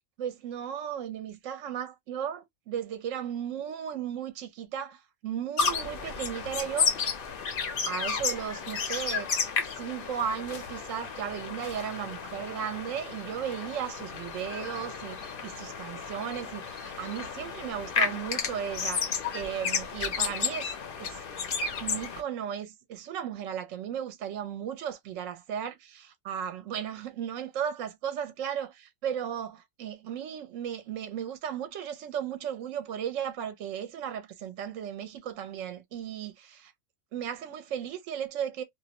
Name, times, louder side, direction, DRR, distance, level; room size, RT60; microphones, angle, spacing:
voice 1, 0.2-7.1 7.9-9.3 9.7-21.2 21.8-36.7 37.1-38.6, right 9 dB, 70° right, 0.9 m, -35 dB
sound 1, 5.6-22.2, left 5 dB, 55° left, 0.6 m, -32 dB
2.5 x 2.1 x 2.8 m
omnidirectional pair, 1.4 m